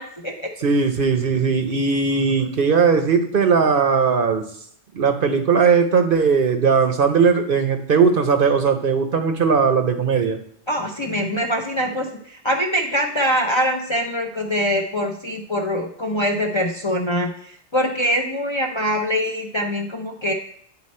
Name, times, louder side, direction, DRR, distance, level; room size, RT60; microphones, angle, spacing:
voice 1, 0.0-0.5 10.7-20.3, equal, 35° left, 1 dB, 0.5 m, -23 dB
voice 2, 0.6-4.4 4.9-10.4, right 5 dB, 55° right, 6 dB, 0.8 m, -18 dB
9.8 x 4.2 x 4.2 m, 0.65 s
omnidirectional pair, 1.2 m